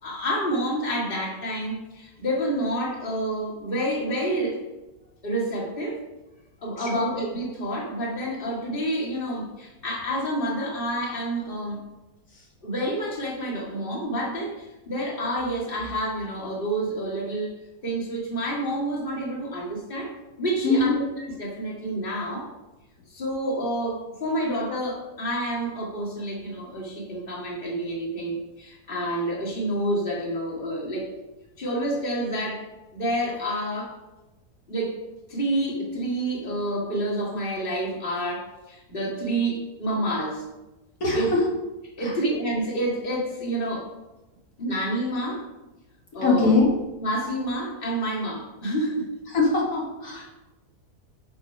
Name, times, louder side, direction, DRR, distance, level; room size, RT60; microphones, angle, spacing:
voice 1, 0.0-4.6 5.2-6.0 6.6-11.8 12.6-20.1 20.4-20.9 21.4-22.5 23.1-31.1 31.6-32.6 32.9-33.9 34.7-35.0 35.3-40.4 41.1-41.3 42.0-43.9 44.6-45.4 46.1-46.6 47.0-49.1 50.1-50.3, right 1 dB, 35° left, -3 dB, 2.1 m, -28 dB
voice 2, 6.8-7.1 20.6-20.9 41.0-41.4 42.0-42.1 46.2-46.7 49.3-50.3, left 3 dB, 65° left, -3 dB, 2.2 m, -22 dB
11.0 x 4.6 x 5.4 m, 1.0 s
omnidirectional pair, 1.7 m